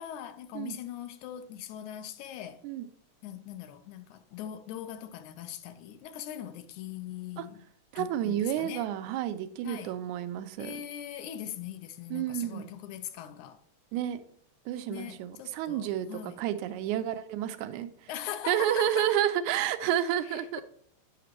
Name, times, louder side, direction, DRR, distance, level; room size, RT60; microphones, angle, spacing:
voice 1, 0.0-2.7 3.2-7.6 8.0-8.9 9.6-10.0 10.6-13.6 14.9-16.4 18.1-19.2 20.3-20.6, left 11 dB, 85° left, 2.0 m, -41 dB
voice 2, 7.9-10.7 12.1-12.7 13.9-14.2 14.7-18.1 18.5-20.6, right 11 dB, 85° right, 2.0 m, -30 dB
9.3 x 5.9 x 3.0 m
omnidirectional pair, 3.4 m